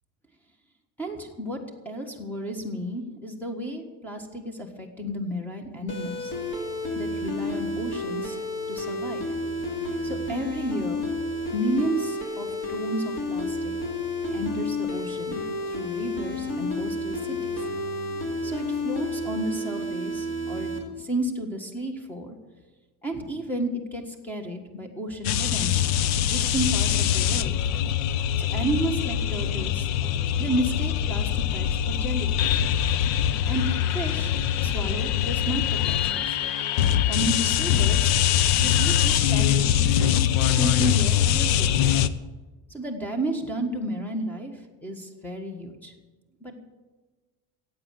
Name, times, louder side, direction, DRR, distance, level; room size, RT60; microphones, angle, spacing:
voice 1, 1.0-6.3 6.9-8.4 8.7-9.3 10.0-11.1 11.5-13.7 14.3-17.7 18.4-20.7 21.0-22.4 23.0-25.8 26.1-27.6 28.4-29.9 30.4-32.6 33.4-33.6 33.9-34.3 34.6-36.4 37.0-38.2 38.6-40.3 40.5-41.9 42.7-45.9 46.4-46.6, right 1 dB, 5° left, 4 dB, 1.5 m, -32 dB
sound 1, 5.9-20.8, left 2 dB, 35° left, 2.7 m, -31 dB
sound 2, 25.2-42.1, left 10 dB, 50° left, 0.7 m, -23 dB
15.0 x 8.8 x 7.6 m, 1.3 s
cardioid pair, 175°, 35 cm